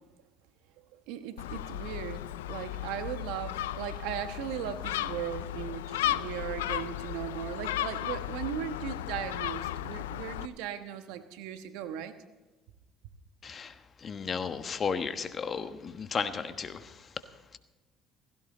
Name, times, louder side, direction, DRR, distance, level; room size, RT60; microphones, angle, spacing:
voice 1, 0.9-2.2 2.5-12.1, right 10 dB, 80° right, 9 dB, 1.2 m, -37 dB
Gull seagull, 1.4-10.5, left 14 dB, 90° left, 0.4 m, -35 dB
voice 2, 13.4-13.7 14.0-16.8, left 6 dB, 45° left, 10 dB, 1.3 m, -33 dB
16.5 x 16.0 x 3.9 m, 1.2 s
hypercardioid pair, 65°, 0 cm